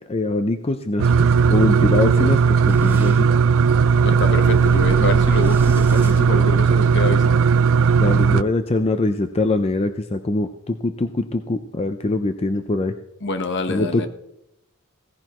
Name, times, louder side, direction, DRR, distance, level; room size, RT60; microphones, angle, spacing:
voice 1, 0.1-3.3 8.0-12.9 13.7-14.1, left 2 dB, 25° left, 8 dB, 0.5 m, -23 dB
sound 1, 1.0-8.4, right 6 dB, 65° right, 0.4 m, -16 dB
Boom, 2.7-7.1, equal, 10° right, 4.3 m, -33 dB
voice 2, 4.0-7.5 13.2-14.1, left 2 dB, 55° left, 8 dB, 1.2 m, -26 dB
16.5 x 15.0 x 3.0 m, 0.82 s
head